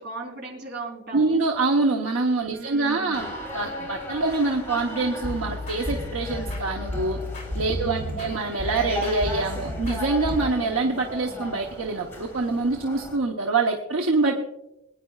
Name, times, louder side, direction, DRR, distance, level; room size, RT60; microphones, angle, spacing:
voice 1, 0.0-1.4 2.5-3.4 7.8-8.5, right 2 dB, 50° right, 0 dB, 3.8 m, -38 dB
voice 2, 1.1-7.2 7.5-14.4, right 3 dB, 70° right, 2 dB, 1.0 m, -25 dB
sound 1, 3.1-13.2, left 1 dB, 10° left, 3.1 m, -36 dB
sound 2, 5.0-10.4, left 1 dB, 35° left, 3.2 m, -32 dB
21.0 x 9.9 x 2.4 m, 0.89 s
head